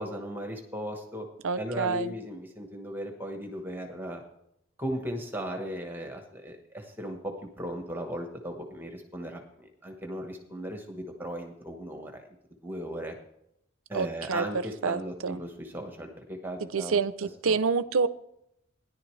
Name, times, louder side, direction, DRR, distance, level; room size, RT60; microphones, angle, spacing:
voice 1, 0.0-1.3 1.6-4.2 4.8-12.2 12.6-13.1 13.9-17.0 17.5-17.6, equal, 10° right, 4 dB, 1.2 m, -37 dB
voice 2, 1.4-2.1 13.9-14.4 14.8-15.4 16.7-18.1, right 5 dB, 75° right, 15 dB, 0.6 m, -27 dB
17.0 x 11.0 x 3.2 m, 0.78 s
head